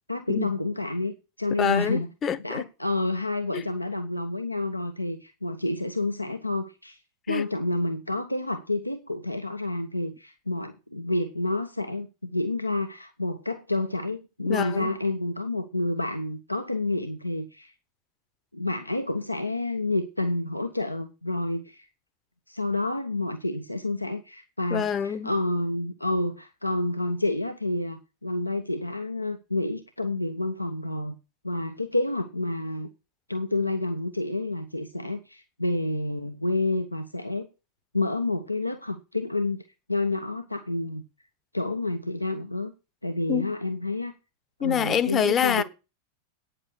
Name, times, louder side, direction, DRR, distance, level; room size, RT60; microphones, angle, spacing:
voice 1, 0.1-2.1 2.4-7.0 7.3-17.7 18.5-21.9 22.5-31.2 31.4-32.9 33.3-37.5 37.9-39.6 39.9-41.0 41.5-42.7 43.0-44.1 44.6-45.6, left 2 dB, 85° left, 0.9 m, -29 dB
voice 2, 1.6-2.7 3.5-3.7 7.3-7.5 14.5-14.9 24.7-25.3 43.3-43.5 44.6-45.6, left 8 dB, 25° left, 0.9 m, -26 dB
9.3 x 7.6 x 6.3 m
figure-of-eight pair, 90°, 0 cm